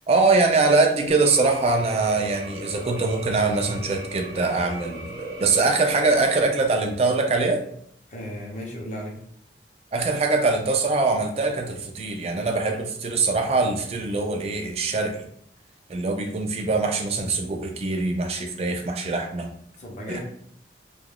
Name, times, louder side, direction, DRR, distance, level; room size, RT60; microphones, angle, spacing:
voice 1, 0.1-7.6 9.9-15.2 15.9-19.5 20.1-20.2, right 3 dB, 35° right, 3 dB, 0.3 m, -23 dB
sound 1, 1.1-6.5, equal, 65° right, 0.7 m, -38 dB
voice 2, 8.1-9.1 19.8-20.2, equal, 45° left, -1 dB, 0.6 m, -35 dB
3.3 x 2.3 x 2.2 m, 0.66 s
head